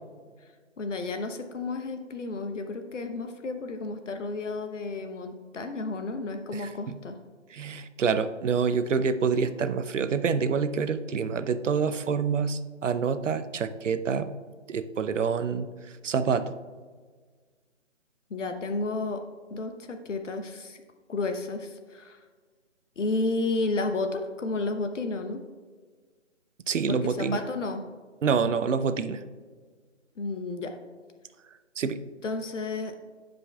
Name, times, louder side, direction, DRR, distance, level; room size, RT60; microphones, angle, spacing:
voice 1, 0.8-7.2 18.3-19.2 19.5-20.8 21.1-22.3 23.0-25.4 26.9-27.8 30.2-30.8 32.2-32.9, left 3 dB, 75° left, 6 dB, 0.9 m, -32 dB
voice 2, 6.5-7.0 7.5-14.3 14.7-15.7 16.0-16.6 26.7-27.4 28.2-29.2 31.8-32.0, right 6 dB, 80° right, 12 dB, 0.6 m, -27 dB
15.5 x 5.2 x 2.3 m, 1.5 s
hypercardioid pair, 165°, 37 cm